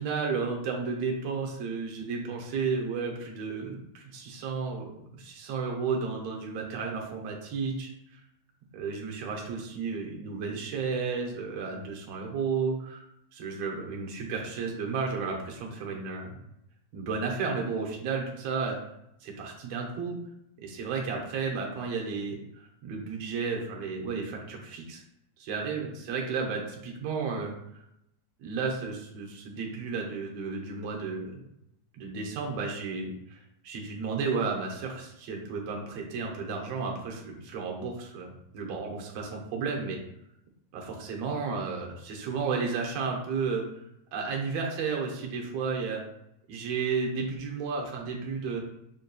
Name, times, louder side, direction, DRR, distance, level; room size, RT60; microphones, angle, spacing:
voice 1, 0.0-8.2 8.7-13.0 13.3-16.4 16.9-18.8 19.2-20.2 20.6-25.0 25.4-27.5 28.4-31.4 31.9-40.0 40.7-43.8 44.1-46.0 46.5-48.6, right 5 dB, 75° right, 0 dB, 1.7 m, -33 dB
6.5 x 2.6 x 2.2 m, 0.81 s
omnidirectional pair, 3.3 m